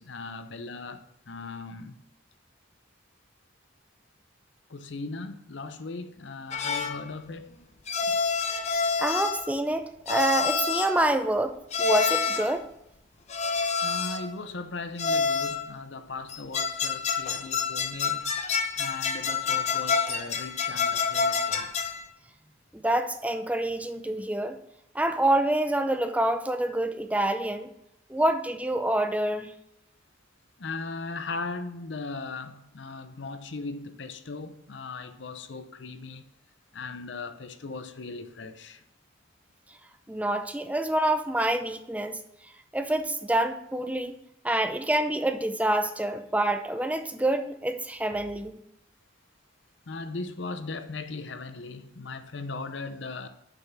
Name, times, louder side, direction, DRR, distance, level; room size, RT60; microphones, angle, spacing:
voice 1, 0.0-2.0 4.7-7.7 8.1-8.2 13.8-21.7 30.6-36.2 36.7-38.8 49.9-53.3, left 3 dB, 70° left, 0.7 m, -38 dB
sound 1, 6.5-7.0 7.9-9.5 10.1-11.0 11.7-12.6 13.3-14.3 15.0-15.7 16.3-22.0, left 5 dB, 35° left, 0.8 m, -28 dB
voice 2, 9.0-12.7 22.7-24.6 24.9-27.7 28.1-29.5 40.1-42.2 42.7-44.2 44.4-48.6, right 1 dB, 10° right, 0.6 m, -27 dB
7.2 x 5.7 x 6.0 m
head